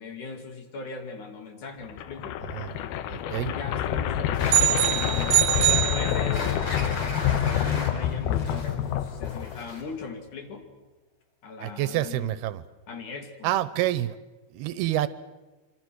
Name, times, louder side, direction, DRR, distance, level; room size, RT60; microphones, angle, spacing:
voice 1, 0.0-2.4 3.4-10.7 11.4-12.4 12.9-13.5, left 4 dB, 55° left, 5 dB, 3.8 m, -39 dB
sound 1, 1.8-9.9, left 10 dB, 80° left, 2.9 m, -27 dB
voice 2, 3.1-3.5 11.6-12.6 13.4-14.2 14.5-15.1, right 14 dB, 85° right, 15 dB, 2.9 m, -27 dB
sound 2, 4.3-10.0, left 2 dB, 35° left, 4.7 m, -38 dB
sound 3, 4.5-6.7, right 15 dB, 70° right, 2.6 m, -24 dB
27.0 x 25.5 x 6.4 m, 1.2 s
omnidirectional pair, 4.5 m